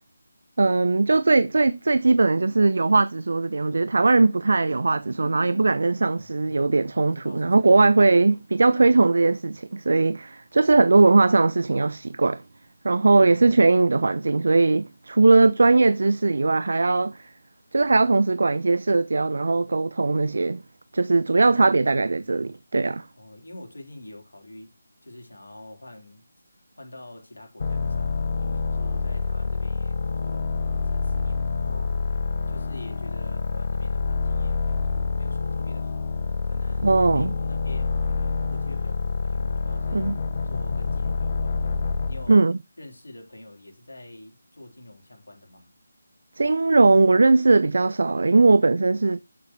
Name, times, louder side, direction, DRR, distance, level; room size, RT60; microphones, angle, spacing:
voice 1, 0.6-12.4 12.8-17.2 17.7-20.6 20.9-23.0 36.8-37.3 39.9-40.2 42.3-42.6 46.4-49.2, right 3 dB, 60° right, 0.5 m, -19 dB
voice 2, 6.1-7.9 13.1-13.7 21.4-22.6 23.1-24.7 25.0-36.1 36.4-40.1 40.4-41.8 42.1-42.5 42.8-45.7, left 1 dB, 70° left, 3.5 m, -46 dB
sound 1, 27.6-42.3, left 4 dB, 45° left, 1.1 m, -27 dB
12.0 x 6.7 x 3.0 m
figure-of-eight pair, 155°, 0 cm